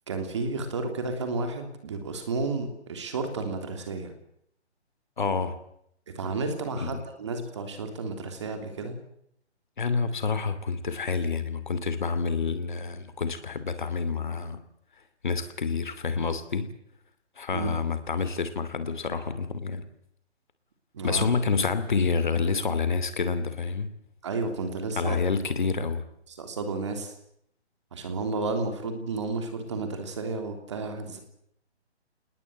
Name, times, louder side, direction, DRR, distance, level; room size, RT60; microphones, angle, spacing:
voice 1, 0.1-4.1 6.1-9.0 17.5-17.8 20.9-21.3 24.2-25.2 26.4-27.1 27.9-31.2, right 3 dB, 25° right, 6 dB, 3.2 m, -32 dB
voice 2, 5.2-5.6 6.8-7.0 9.8-14.6 15.2-16.7 17.4-19.9 21.0-23.9 25.0-26.0, left 5 dB, 45° left, 12 dB, 2.7 m, -28 dB
28.0 x 20.0 x 7.9 m, 0.72 s
hypercardioid pair, 180°, 34 cm